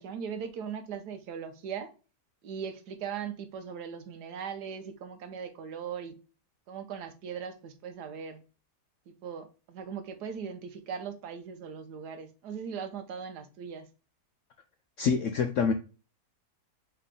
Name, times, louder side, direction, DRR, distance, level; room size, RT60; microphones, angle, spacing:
voice 1, 0.0-1.9 2.4-6.1 6.7-8.4 9.1-13.9, right 7 dB, 75° right, 1.3 m, -39 dB
voice 2, 15.0-15.7, left 6 dB, 75° left, 0.7 m, -26 dB
3.9 x 3.4 x 3.6 m
omnidirectional pair, 1.8 m